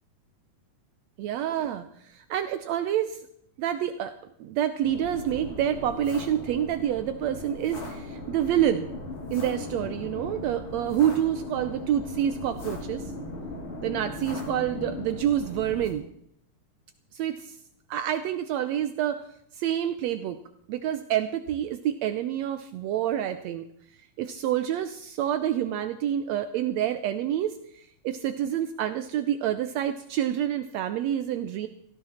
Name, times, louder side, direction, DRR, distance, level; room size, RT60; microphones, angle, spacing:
voice 1, 1.2-3.3 3.6-4.1 4.4-8.9 9.3-13.1 13.8-16.1 17.1-17.6 17.9-19.2 19.5-20.4 20.7-23.6 24.2-31.7, right 10 dB, 85° right, 10 dB, 1.5 m, -28 dB
sound 1, 4.8-15.9, left 2 dB, 40° left, 3.5 m, -38 dB
18.0 x 15.0 x 4.3 m, 0.71 s
omnidirectional pair, 3.9 m